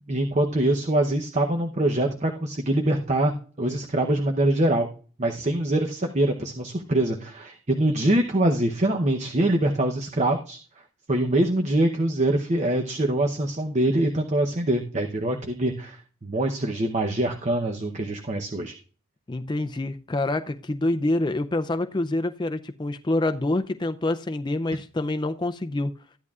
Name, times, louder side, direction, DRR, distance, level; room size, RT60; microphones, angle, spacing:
voice 1, 0.1-4.9 5.2-10.6 11.1-18.7, right 1 dB, 30° right, 3 dB, 0.8 m, -24 dB
voice 2, 19.3-25.9, left 2 dB, 20° left, 9 dB, 0.4 m, -26 dB
13.5 x 10.5 x 2.4 m, 0.40 s
head